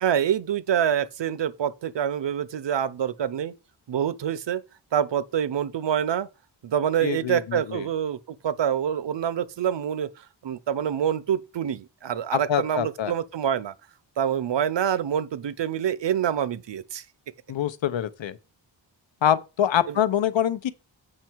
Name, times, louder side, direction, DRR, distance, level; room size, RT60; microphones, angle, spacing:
voice 1, 0.0-3.5 3.9-4.6 4.9-6.3 6.6-13.7 14.2-17.0 19.9-20.0, right 9 dB, 65° right, 0.8 m, -26 dB
voice 2, 7.0-7.8 12.3-13.1 17.5-18.4 19.2-20.7, left 10 dB, 70° left, 0.8 m, -25 dB
7.6 x 5.6 x 4.6 m
wide cardioid pair, 100°, 47 cm